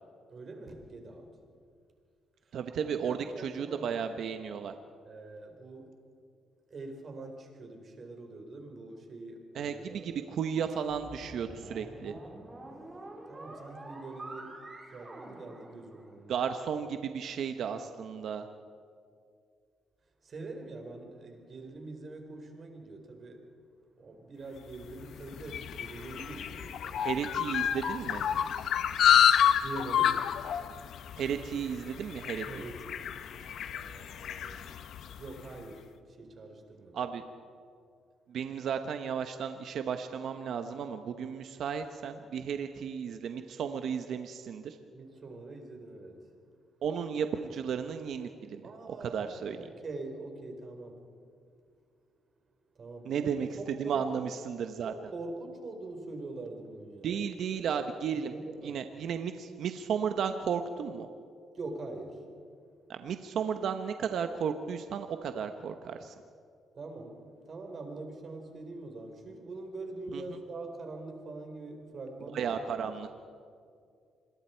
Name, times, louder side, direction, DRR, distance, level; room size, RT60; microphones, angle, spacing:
voice 1, 0.3-1.3 2.5-3.9 5.0-5.9 6.7-10.3 13.3-14.5 14.9-16.4 20.2-23.5 24.0-27.2 29.6-30.2 32.5-33.1 33.7-34.7 35.2-37.1 44.9-46.2 48.6-51.1 52.8-54.2 54.8-57.2 58.1-58.8 61.5-62.2 66.7-72.6 73.1-73.2, right 2 dB, 45° right, 4 dB, 4.3 m, -44 dB
voice 2, 2.5-4.7 9.5-12.1 16.3-18.5 27.0-28.2 31.2-32.4 36.9-37.2 38.3-44.8 46.8-48.6 48.9-49.6 53.0-54.9 57.0-58.3 58.6-61.1 62.9-66.1 70.1-70.4 72.3-73.2, right 7 dB, 70° right, 7 dB, 1.0 m, -34 dB
sound 1, 10.9-16.4, right 2 dB, 20° right, 4.5 m, -47 dB
sound 2, 24.8-35.4, left 9 dB, 70° left, 0.9 m, -29 dB
27.0 x 21.5 x 4.6 m, 2.3 s
cardioid pair, 90°, 0 cm